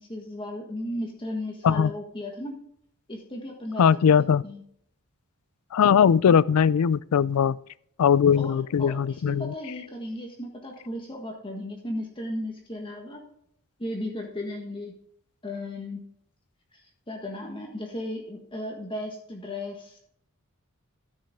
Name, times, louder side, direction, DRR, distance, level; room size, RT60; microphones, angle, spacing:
voice 1, 0.0-2.6 3.1-4.1 4.4-4.6 8.3-13.2 13.8-14.9 15.4-16.0 16.7-20.0, left 1 dB, 25° left, 1.5 m, -35 dB
voice 2, 3.8-4.4 5.7-7.6 8.0-9.5, left 7 dB, 85° left, 0.4 m, -20 dB
14.0 x 6.3 x 3.6 m
head